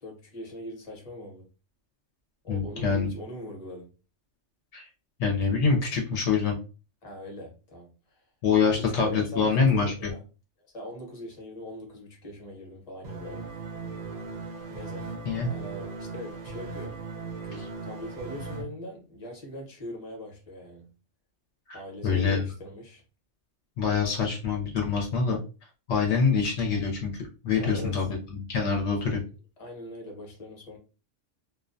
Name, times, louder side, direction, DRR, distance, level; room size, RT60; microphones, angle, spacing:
voice 1, 0.0-1.4 2.4-3.9 7.0-8.2 8.6-10.2 10.7-13.5 14.7-17.0 17.4-20.9 21.7-23.0 27.5-28.1 28.9-29.0 29.6-30.8, left 1 dB, 35° left, 0 dB, 0.8 m, -41 dB
voice 2, 2.5-3.1 4.7-4.9 5.2-6.6 8.4-9.9 15.3-15.5 21.7-21.8 22.0-22.4 23.8-25.4 25.9-27.1 27.4-29.2, left 5 dB, 70° left, 0 dB, 0.9 m, -25 dB
sound 1, 13.0-18.6, right 4 dB, 45° right, 0.5 m, -38 dB
2.4 x 2.2 x 2.5 m, 0.33 s
omnidirectional pair, 1.3 m